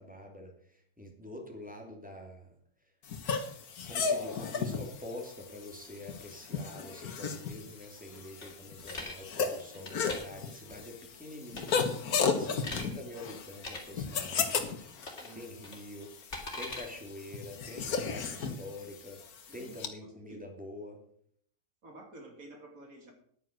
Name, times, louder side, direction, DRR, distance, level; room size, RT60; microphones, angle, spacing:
voice 1, 0.0-2.5 3.9-16.1 16.5-19.2 19.5-21.0, left 1 dB, 5° right, 1 dB, 2.7 m, -46 dB
sound 1, 3.1-19.9, left 5 dB, 85° left, 1.8 m, -35 dB
sound 2, 8.4-9.2 9.7-10.2 11.5-11.9 12.2-12.9 13.5-13.8 15.0-15.3 15.6-16.8, left 2 dB, 50° left, 3.0 m, -41 dB
voice 2, 15.2-15.5 19.5-19.7 20.0-20.5 21.8-23.1, right 2 dB, 70° right, 3 dB, 3.2 m, -51 dB
10.5 x 9.3 x 6.4 m, 0.62 s
omnidirectional pair, 1.5 m